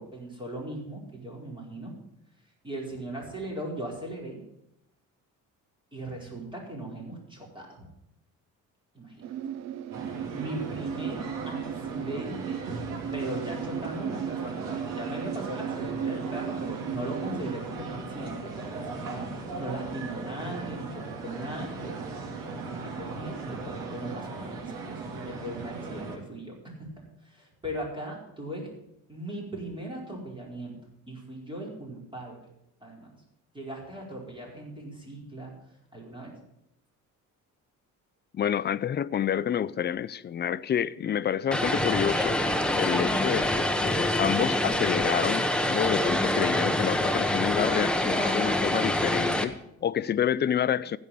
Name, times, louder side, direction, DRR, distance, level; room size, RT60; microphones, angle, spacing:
voice 1, 0.0-1.9 2.6-4.4 5.9-7.9 8.9-9.2 10.3-12.6 13.1-26.9 27.2-28.7 29.1-30.7 31.1-32.5 32.8-33.1 33.5-35.5 35.9-36.3, right 1 dB, 15° right, 4.8 m, -38 dB
sound 1, 9.2-17.6, right 9 dB, 55° right, 0.5 m, -36 dB
sound 2, 9.9-26.2, right 3 dB, 75° right, 2.7 m, -38 dB
voice 2, 38.3-42.4 42.8-51.0, left 9 dB, 30° left, 0.5 m, -28 dB
Vehicle, 41.5-49.4, left 1 dB, 5° left, 1.0 m, -26 dB
15.5 x 5.5 x 8.3 m
cardioid pair, 100°, 33 cm